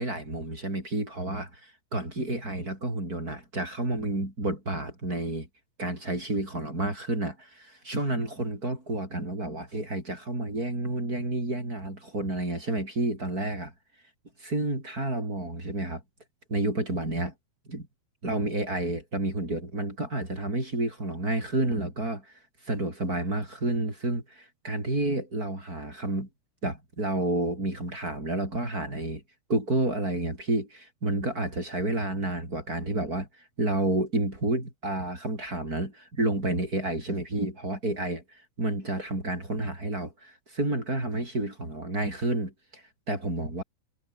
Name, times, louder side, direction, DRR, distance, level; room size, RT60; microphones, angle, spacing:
voice 1, 0.0-5.5 5.8-13.7 14.4-16.0 16.5-17.3 17.7-17.9 18.2-22.3 22.6-26.3 26.6-29.2 29.5-43.6, right 1 dB, 15° right, 7.1 m, -30 dB
omnidirectional pair, 5.8 m